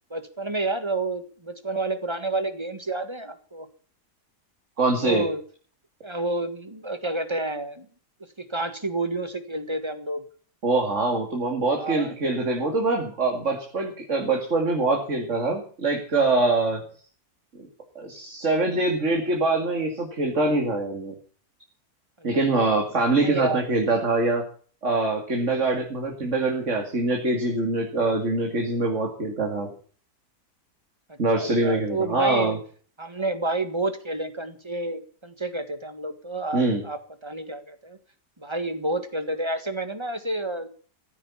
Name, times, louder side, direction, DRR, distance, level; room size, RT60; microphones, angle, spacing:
voice 1, 0.1-3.7 5.0-5.4 6.0-7.9 8.4-10.2 11.8-12.1 22.2-22.7 23.2-23.7 31.1-32.6 33.0-38.0 38.4-40.7, right 2 dB, 20° right, 9 dB, 1.7 m, -30 dB
voice 2, 4.8-5.2 10.6-16.8 18.0-21.1 22.2-24.4 24.8-29.7 31.2-32.6 36.5-36.8, right 2 dB, 50° right, 1 dB, 2.9 m, -24 dB
15.0 x 9.3 x 7.3 m, 0.43 s
omnidirectional pair, 1.6 m